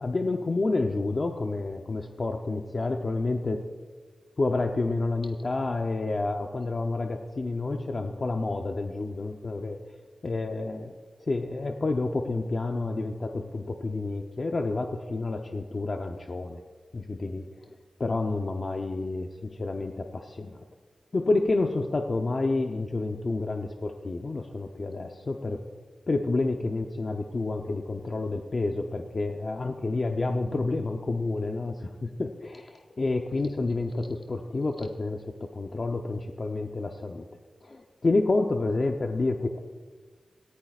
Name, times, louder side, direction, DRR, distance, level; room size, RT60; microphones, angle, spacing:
voice 1, 0.0-3.6 4.4-9.8 10.2-10.9 11.2-16.6 16.9-17.4 18.0-20.6 21.1-25.6 26.1-37.3 37.6-39.6, left 3 dB, 40° left, 3 dB, 0.7 m, -29 dB
18.0 x 14.5 x 2.4 m, 1.4 s
wide cardioid pair, 135°, 0 cm